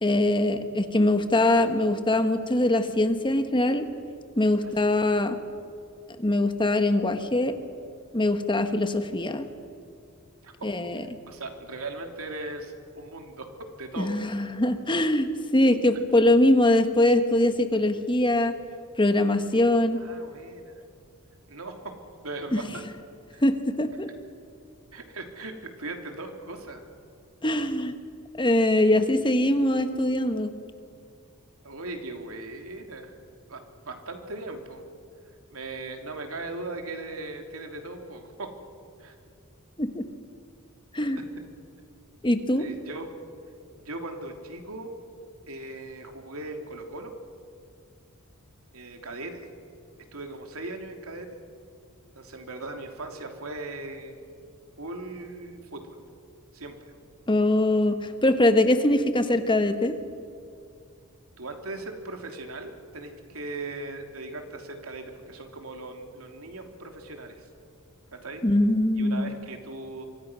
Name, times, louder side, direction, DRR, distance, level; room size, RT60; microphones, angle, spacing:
voice 1, 0.0-3.8 4.4-5.4 6.2-7.5 8.1-9.5 10.6-11.0 14.0-18.5 19.0-20.0 22.5-22.7 23.4-24.1 27.4-27.9 28.3-30.5 39.8-40.0 40.9-41.2 42.2-42.7 57.3-60.0 68.4-69.3, left 1 dB, 20° left, 8 dB, 1.3 m, -22 dB
voice 2, 4.6-5.3 10.4-10.9 11.3-13.5 13.7-14.2 20.0-20.8 21.5-21.7 22.2-22.8 23.3-23.4 24.9-26.9 31.6-33.1 33.5-34.8 35.5-38.5 39.0-39.1 41.0-41.2 42.6-43.1 43.8-44.9 45.5-47.1 48.7-49.5 50.1-51.4 52.1-54.2 54.8-56.0 56.5-56.8 61.4-67.5 68.2-68.4 68.9-70.1, right 2 dB, 75° right, 4 dB, 3.1 m, -39 dB
26.5 x 24.5 x 6.3 m, 2.4 s
head